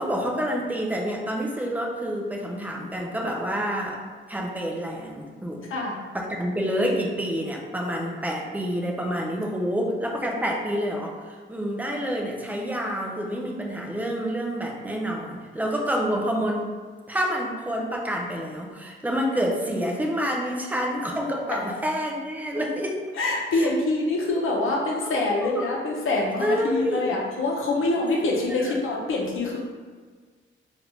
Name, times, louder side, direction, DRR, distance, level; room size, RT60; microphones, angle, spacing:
voice 1, 0.0-4.0 4.3-5.6 6.1-16.7 17.1-23.0 23.5-23.7 25.0-25.6 26.4-27.2 27.8-28.8, equal, 10° right, -1 dB, 0.3 m, -28 dB
voice 2, 23.2-29.6, left 2 dB, 85° left, -2 dB, 0.7 m, -25 dB
3.3 x 2.5 x 3.0 m, 1.5 s
wide cardioid pair, 175°, 21 cm